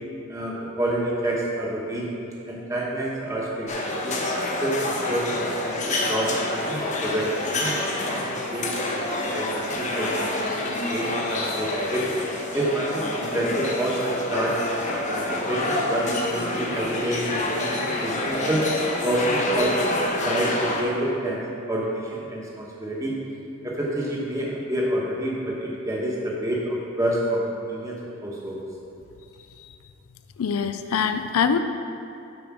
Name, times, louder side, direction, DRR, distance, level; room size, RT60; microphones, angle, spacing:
voice 1, 0.3-2.1 2.5-3.7 4.0-12.0 12.5-14.6 15.1-18.7 19.0-19.7 20.2-23.1 23.6-28.6, right 1 dB, 15° right, -4 dB, 1.1 m, -28 dB
sound 1, 3.7-20.8, left 2 dB, 30° left, 0.8 m, -27 dB
voice 2, 30.4-31.6, left 6 dB, 75° left, 9 dB, 0.4 m, -23 dB
7.1 x 5.0 x 6.1 m, 2.6 s
head